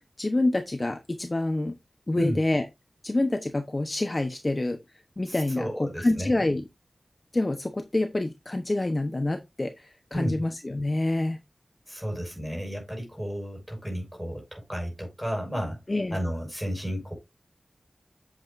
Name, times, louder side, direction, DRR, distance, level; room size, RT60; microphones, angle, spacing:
voice 1, 0.2-1.8 2.1-2.6 3.0-4.8 5.2-6.6 7.3-11.4 15.9-16.2, left 2 dB, 35° left, 1.0 m, -27 dB
voice 2, 5.3-6.5 10.1-10.4 11.9-15.8 16.1-17.2, equal, 5° right, 6.2 m, -32 dB
8.6 x 7.8 x 2.6 m
wide cardioid pair, 80°, 0 cm